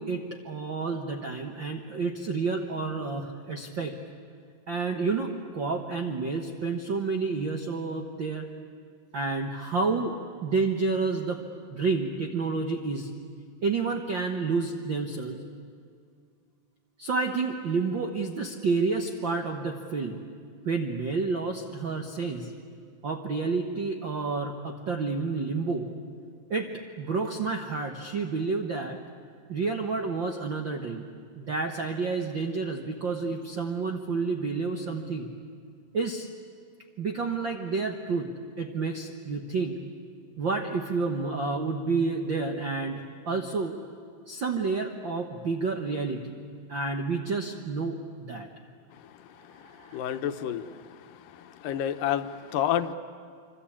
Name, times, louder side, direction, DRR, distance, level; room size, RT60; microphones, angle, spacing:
voice 1, 0.0-4.0 4.7-8.4 9.1-10.1 10.4-11.4 11.7-13.1 13.6-15.4 17.0-20.2 20.6-22.5 23.0-25.9 26.5-26.7 27.0-29.0 29.5-31.1 31.3-35.3 35.9-36.3 37.0-38.3 38.6-39.8 40.4-43.8 44.3-46.4 46.7-48.5 49.6-50.1, right 4 dB, 70° right, 3 dB, 1.1 m, -30 dB
voice 2, 49.9-50.7 51.6-52.9, left 10 dB, 75° left, 9 dB, 2.5 m, -28 dB
26.0 x 26.0 x 8.7 m, 2.2 s
omnidirectional pair, 4.2 m